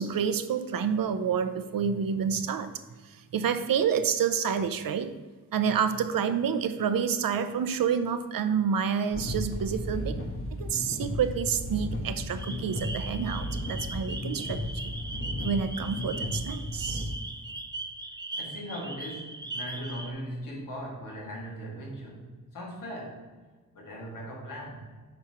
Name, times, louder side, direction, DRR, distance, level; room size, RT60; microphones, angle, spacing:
voice 1, 0.0-2.7 3.0-5.1 5.5-10.1 10.6-14.9 15.4-17.1, right 7 dB, 85° right, 10 dB, 0.6 m, -28 dB
sound 1, 9.1-17.0, left 1 dB, 40° left, 1.2 m, -34 dB
sound 2, 12.4-20.1, right 2 dB, 15° right, 0.5 m, -39 dB
voice 2, 18.3-23.3 23.7-24.8, equal, 70° left, -3 dB, 2.2 m, -39 dB
8.5 x 5.8 x 3.0 m, 1.3 s
wide cardioid pair, 180°, 33 cm